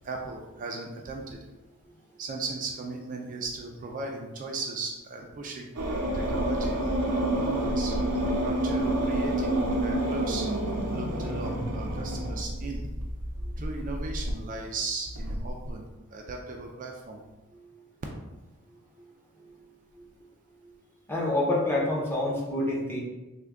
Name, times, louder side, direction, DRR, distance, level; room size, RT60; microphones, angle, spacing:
voice 1, 0.0-1.4 2.2-5.7 6.1-8.0 8.4-10.5 10.9-12.8 13.6-15.8 16.1-17.2, right 3 dB, 35° right, 1 dB, 0.3 m, -37 dB
sound 1, 5.7-14.3 15.1-15.7, right 1 dB, 90° right, 0.6 m, -29 dB
voice 2, 21.1-23.0, left 1 dB, 10° left, -4 dB, 0.6 m, -27 dB
3.4 x 2.2 x 3.5 m, 1.1 s
head